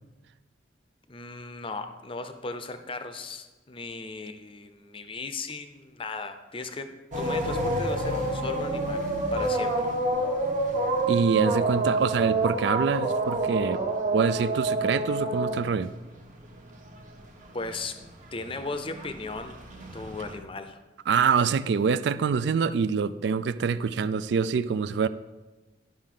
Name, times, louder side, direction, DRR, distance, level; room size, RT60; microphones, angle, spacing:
voice 1, 1.1-6.9 7.2-9.0 9.3-9.9 17.5-18.0 18.3-19.6 19.9-20.8, left 3 dB, 30° left, 9 dB, 0.6 m, -36 dB
sound 1, 7.1-17.1 17.4-20.4, right 2 dB, 45° right, 1.0 m, -28 dB
voice 2, 11.1-13.8 14.1-15.9 21.1-25.1, right 6 dB, 65° right, 14 dB, 0.3 m, -25 dB
12.0 x 5.3 x 3.8 m, 1.2 s
head